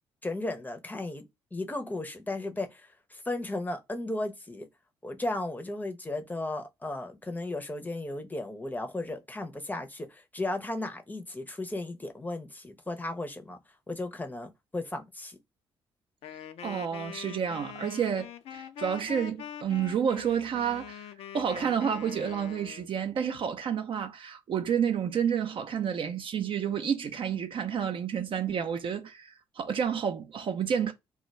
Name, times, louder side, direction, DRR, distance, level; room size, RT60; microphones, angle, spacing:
voice 1, 0.2-4.7 5.0-13.6 13.9-15.4, left 2 dB, 15° left, 0.6 m, -35 dB
Wind instrument woodwind instrument, 16.2-22.9, left 9 dB, 55° left, 0.4 m, -43 dB
voice 2, 16.3-30.9, right 8 dB, 45° right, 0.5 m, -30 dB
2.2 x 2.2 x 2.9 m
figure-of-eight pair, 45°, 13 cm